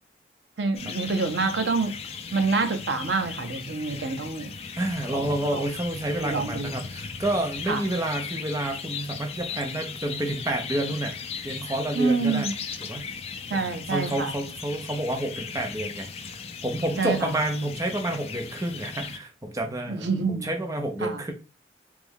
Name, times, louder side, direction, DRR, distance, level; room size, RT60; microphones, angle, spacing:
voice 1, 0.6-1.9 2.3-4.5 5.1-5.6 6.2-6.7 7.7-7.8 11.9-12.5 13.5-14.3 17.0-17.3 19.9-20.5 21.0-21.2, right 4 dB, 90° right, 0.7 m, -27 dB
sound 1, 0.7-19.2, left 6 dB, 35° left, 0.4 m, -37 dB
voice 2, 4.8-11.1 11.4-12.5 12.8-13.1 13.5-16.1 16.6-21.3, right 1 dB, 20° right, 0.6 m, -29 dB
3.4 x 3.1 x 3.5 m
head